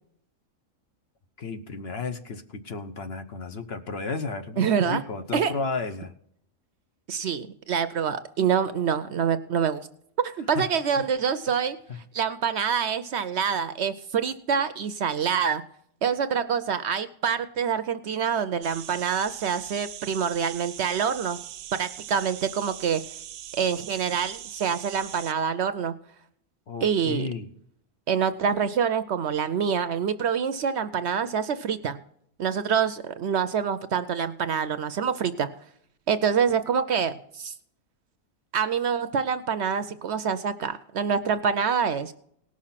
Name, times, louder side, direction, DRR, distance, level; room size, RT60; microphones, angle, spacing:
voice 1, 1.4-6.1 10.5-10.7 11.9-12.0 26.7-27.5, left 4 dB, 50° left, 8 dB, 1.1 m, -33 dB
voice 2, 4.6-5.0 5.3-5.5 7.1-9.9 10.2-11.8 12.1-15.6 16.0-21.4 21.7-23.0 23.6-25.9 26.8-27.3 28.1-32.0 32.4-35.5 36.1-37.5 38.5-42.1, right 7 dB, 60° right, 12 dB, 0.8 m, -26 dB
sound 1, 18.6-25.3, right 11 dB, 85° right, 1.1 m, -41 dB
18.0 x 6.3 x 5.7 m, 0.69 s
omnidirectional pair, 1.4 m